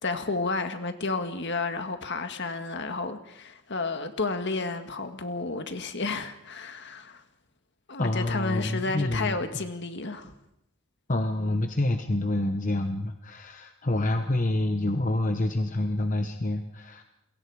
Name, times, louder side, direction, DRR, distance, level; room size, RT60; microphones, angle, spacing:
voice 1, 0.0-7.2 7.9-10.3, left 3 dB, 55° left, 7 dB, 1.8 m, -31 dB
voice 2, 8.0-9.4 11.1-17.0, left 1 dB, 35° left, 6 dB, 1.1 m, -27 dB
27.5 x 22.0 x 4.9 m, 0.86 s
head